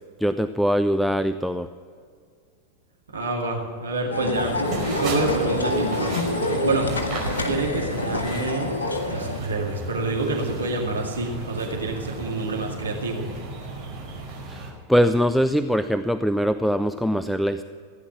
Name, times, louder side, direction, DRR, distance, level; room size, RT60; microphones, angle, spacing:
voice 1, 0.2-1.7 14.5-17.6, equal, ahead, 11 dB, 0.4 m, -22 dB
voice 2, 3.1-4.5 5.0-6.1 6.6-6.9 7.4-8.7 9.1-13.3, right 2 dB, 70° right, 1 dB, 2.1 m, -27 dB
sound 1, 4.1-9.4, left 2 dB, 70° left, 1.7 m, -26 dB
sound 2, 4.3-14.7, right 3 dB, 35° right, 4.9 m, -35 dB
16.0 x 10.0 x 7.4 m, 2.1 s
figure-of-eight pair, 90°, 0 cm